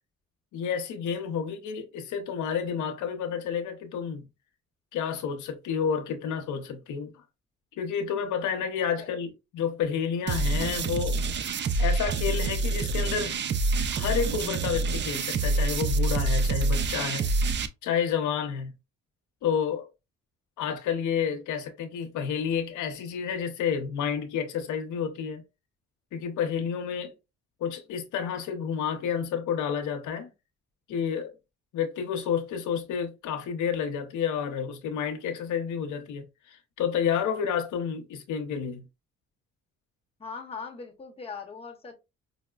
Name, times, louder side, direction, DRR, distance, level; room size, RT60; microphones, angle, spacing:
voice 1, 0.5-4.3 4.9-7.1 7.8-11.2 11.8-13.4 13.9-17.3 17.8-18.7 19.4-19.9 20.6-25.4 26.1-27.1 27.6-30.3 30.9-31.3 31.7-38.9, left 7 dB, 80° left, 0.7 m, -30 dB
sound 1, 10.3-17.7, right 3 dB, 40° right, 0.4 m, -26 dB
voice 2, 40.2-41.9, left 5 dB, 20° left, 0.9 m, -40 dB
5.0 x 2.1 x 2.3 m
cardioid pair, 90°, 30 cm